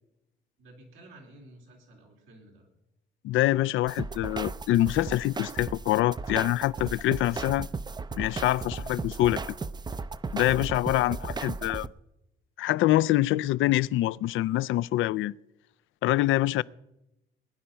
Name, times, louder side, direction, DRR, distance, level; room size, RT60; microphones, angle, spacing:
voice 1, 0.6-2.7 10.9-11.2 16.5-16.6, right 1 dB, 90° right, 3.7 m, -53 dB
voice 2, 3.2-7.7 8.2-9.4 10.3-11.9 12.6-15.3 16.0-16.6, left 15 dB, 80° left, 0.4 m, -25 dB
sound 1, 3.9-11.9, right 4 dB, 20° right, 0.5 m, -36 dB
20.5 x 10.5 x 5.6 m
cardioid pair, 90°, 20 cm